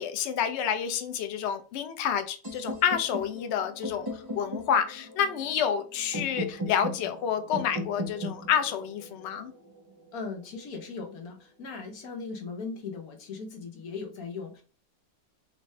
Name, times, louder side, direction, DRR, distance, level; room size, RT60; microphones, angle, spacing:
voice 1, 0.0-9.5, left 8 dB, 75° left, 0.6 m, -29 dB
sound 1, 2.4-10.4, equal, 20° right, 0.8 m, -38 dB
voice 2, 10.1-14.6, left 4 dB, 60° left, 1.4 m, -38 dB
4.5 x 2.5 x 3.1 m
omnidirectional pair, 1.9 m